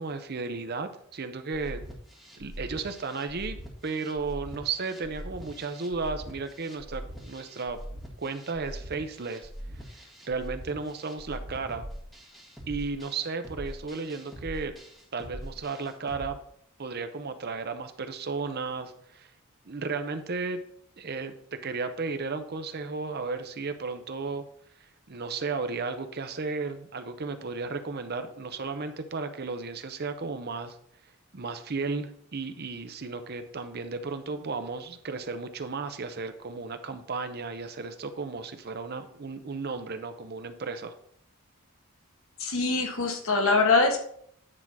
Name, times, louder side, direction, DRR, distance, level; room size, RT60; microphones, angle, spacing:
voice 1, 0.0-1.8 2.4-3.6 3.8-7.8 8.2-9.5 9.9-11.9 12.7-14.7 15.1-16.4 16.8-19.3 19.7-20.6 21.0-24.5 25.1-30.8 31.3-41.0, right 4 dB, 45° right, 8 dB, 0.7 m, -34 dB
sound 1, 1.5-16.3, equal, ahead, 1.8 m, -42 dB
voice 2, 42.4-44.0, left 3 dB, 65° left, 3 dB, 1.5 m, -23 dB
9.8 x 3.8 x 6.0 m, 0.66 s
head